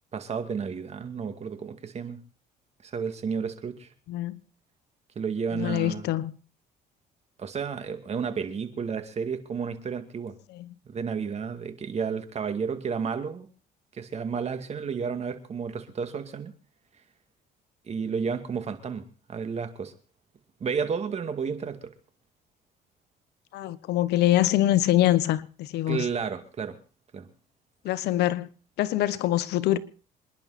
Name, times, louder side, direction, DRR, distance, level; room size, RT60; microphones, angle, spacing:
voice 1, 0.1-2.2 2.8-3.9 5.2-6.1 7.4-10.3 10.9-13.5 13.9-16.5 17.9-19.9 20.6-21.9 25.9-26.8 27.1-27.3, right 6 dB, 40° right, 2.3 m, -32 dB
voice 2, 4.1-4.4 5.5-6.3 10.5-10.7 23.5-26.1 27.8-28.5 28.8-29.8, left 14 dB, 80° left, 1.2 m, -24 dB
27.0 x 10.5 x 4.3 m
cardioid pair, 110°, 17 cm